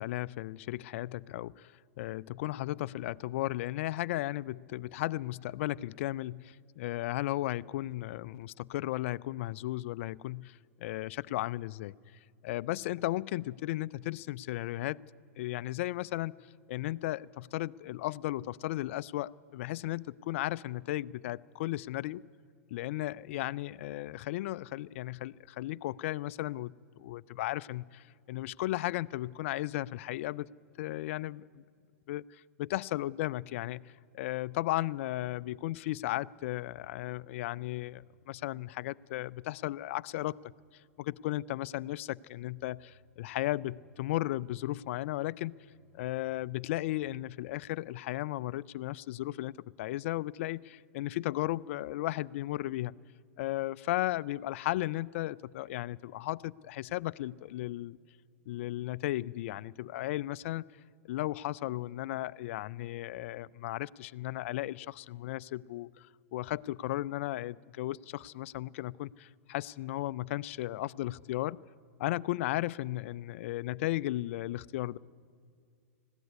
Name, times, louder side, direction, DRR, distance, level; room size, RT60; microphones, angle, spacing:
voice 1, 0.0-1.7 2.0-11.9 12.4-15.0 15.4-16.3 16.7-22.2 22.7-30.5 30.8-31.6 32.1-40.5 41.0-45.5 45.9-52.9 53.4-58.0 58.5-60.6 61.0-66.1 66.3-71.6 72.0-75.0, left 16 dB, 55° left, 19 dB, 0.5 m, -35 dB
Telephone, 37.0-41.0 42.2-47.9, right 3 dB, 60° right, 6.6 m, -68 dB
21.0 x 15.0 x 9.6 m, 2.3 s
hypercardioid pair, 115°, 8 cm